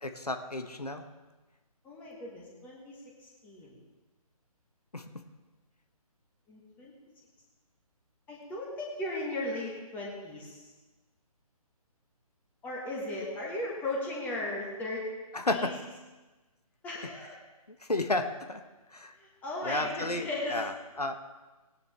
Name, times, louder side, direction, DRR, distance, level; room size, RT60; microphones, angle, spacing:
voice 1, 0.0-1.0 4.9-5.2 15.3-15.7 17.0-17.1 17.8-18.6 18.9-19.1 19.6-21.2, left 2 dB, 80° left, 7 dB, 1.0 m, -32 dB
voice 2, 1.8-3.0 3.4-3.7 6.5-6.9 8.3-10.6 12.6-15.1 15.5-15.7 16.8-17.3 19.2-20.6, left 2 dB, 10° left, -3 dB, 1.4 m, -36 dB
18.0 x 9.8 x 3.3 m, 1.2 s
figure-of-eight pair, 145°, 20 cm